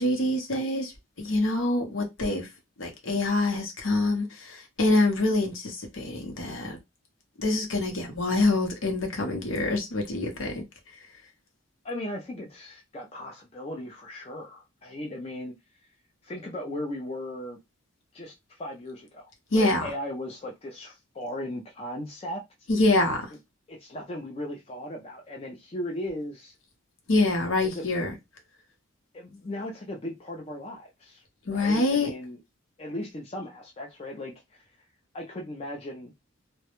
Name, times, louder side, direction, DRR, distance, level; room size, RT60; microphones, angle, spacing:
voice 1, 0.0-2.5 2.8-6.8 7.4-10.6 19.5-19.9 22.7-23.3 27.1-28.1 31.5-32.1, left 2 dB, 70° left, 0.7 m, -25 dB
voice 2, 11.8-15.5 16.2-17.6 18.1-19.2 19.5-22.4 23.7-26.5 27.7-27.9 29.1-31.2 31.5-32.4 32.8-34.6 35.1-36.1, left 1 dB, 30° left, 0.4 m, -37 dB
2.2 x 2.0 x 2.9 m
head